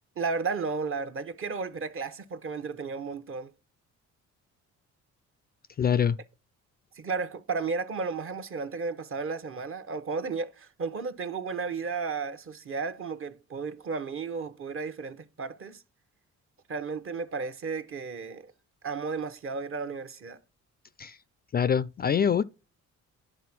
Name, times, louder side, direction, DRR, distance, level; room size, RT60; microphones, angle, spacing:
voice 1, 0.2-3.5 6.9-15.8 16.7-18.5 18.8-20.4, right 4 dB, 45° right, 1.0 m, -33 dB
voice 2, 5.8-6.2 21.0-21.2 21.5-22.4, left 7 dB, 30° left, 0.4 m, -24 dB
10.5 x 3.6 x 6.0 m
cardioid pair, 90°, 30 cm